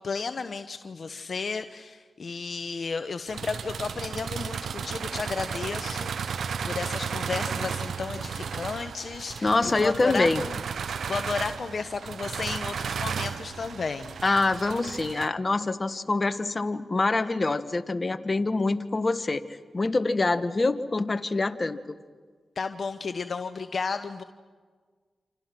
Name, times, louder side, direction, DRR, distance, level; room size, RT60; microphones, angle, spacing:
voice 1, 0.0-10.6 10.9-14.2 22.6-24.2, left 4 dB, 60° left, 9 dB, 1.0 m, -33 dB
sound 1, 3.3-15.3, right 6 dB, 80° right, 0.7 m, -34 dB
voice 2, 9.4-10.4 14.2-19.4 19.7-22.0, left 3 dB, 40° left, 9 dB, 1.5 m, -25 dB
28.0 x 27.0 x 6.0 m, 1.5 s
cardioid pair, 50°, 0 cm